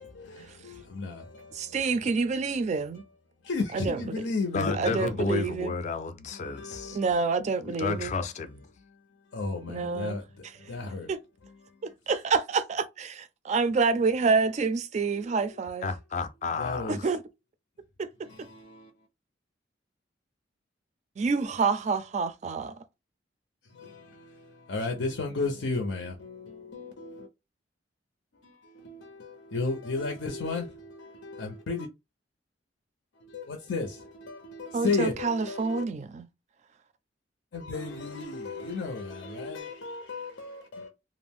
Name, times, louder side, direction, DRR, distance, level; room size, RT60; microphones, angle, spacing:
voice 1, 1.6-3.0 3.7-4.0 4.7-5.7 6.9-8.1 9.7-10.2 11.1-11.2 11.8-15.9 16.9-17.2 18.0-18.1 21.2-22.7 34.7-36.3, right 4 dB, 40° right, 0.3 m, -27 dB
voice 2, 3.5-5.1 6.6-7.0 9.3-10.2 10.7-11.1 16.6-17.0 24.7-27.3 28.9-29.0 29.5-30.7 31.2-31.9 33.3-33.9 34.3-35.8 37.5-40.9, left 3 dB, 90° left, 0.6 m, -33 dB
voice 3, 4.5-7.0 7.8-8.6 15.8-16.9, left 4 dB, 40° left, 0.4 m, -31 dB
2.4 x 2.0 x 3.4 m
head